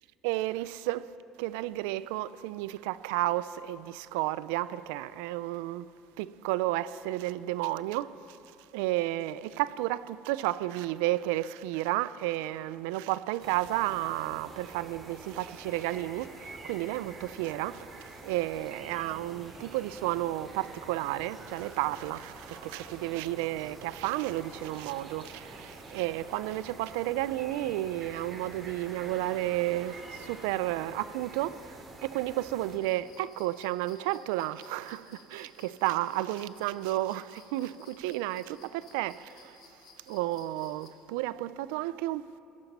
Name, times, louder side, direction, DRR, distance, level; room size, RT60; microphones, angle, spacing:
voice 1, 0.2-5.9 6.2-8.4 8.7-39.6 40.1-42.4, right 16 dB, 90° right, 0.4 m, -32 dB
sound 1, 13.4-32.8, right 2 dB, 30° right, 2.5 m, -48 dB
sound 2, 18.6-31.5, right 3 dB, 60° right, 3.0 m, -53 dB
sound 3, 32.8-40.9, left 7 dB, 60° left, 1.6 m, -58 dB
17.0 x 12.5 x 5.4 m
cardioid pair, 115°, 0 cm